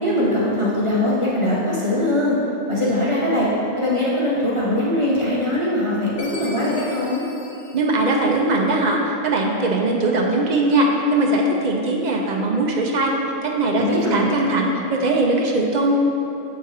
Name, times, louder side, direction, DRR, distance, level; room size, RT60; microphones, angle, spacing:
voice 1, 0.0-2.4 2.7-3.5 3.8-7.2 13.7-14.3, left 1 dB, 25° right, -8 dB, 0.9 m, -21 dB
Chime, 6.2-8.7, left 2 dB, 50° left, 1.0 m, -41 dB
voice 2, 7.7-13.1 13.4-16.0, right 2 dB, 50° right, 0 dB, 0.5 m, -20 dB
7.6 x 3.7 x 4.2 m, 3.0 s
omnidirectional pair, 1.3 m